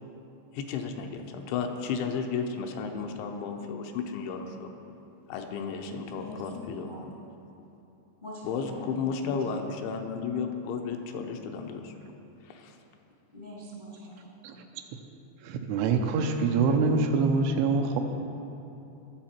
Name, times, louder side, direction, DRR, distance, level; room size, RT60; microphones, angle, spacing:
voice 1, 0.5-4.7 5.3-7.2 8.4-11.9 12.4-12.8, left 5 dB, 80° left, 4 dB, 3.0 m, -33 dB
voice 2, 6.1-7.0 8.2-9.7 13.3-14.3, equal, 35° left, -7 dB, 0.7 m, -43 dB
voice 3, 15.4-18.0, right 4 dB, 85° right, 4 dB, 3.3 m, -25 dB
22.0 x 7.5 x 4.5 m, 2.9 s
omnidirectional pair, 5.5 m